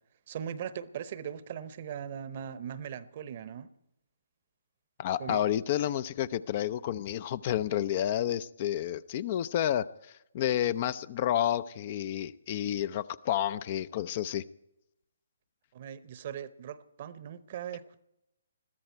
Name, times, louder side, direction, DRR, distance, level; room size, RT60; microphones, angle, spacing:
voice 1, 0.3-3.7 5.2-5.4 15.7-18.0, right 9 dB, 40° right, 0.9 m, -39 dB
voice 2, 5.0-14.4, left 11 dB, 35° left, 0.5 m, -30 dB
21.5 x 14.0 x 4.5 m
figure-of-eight pair, 135°, 0 cm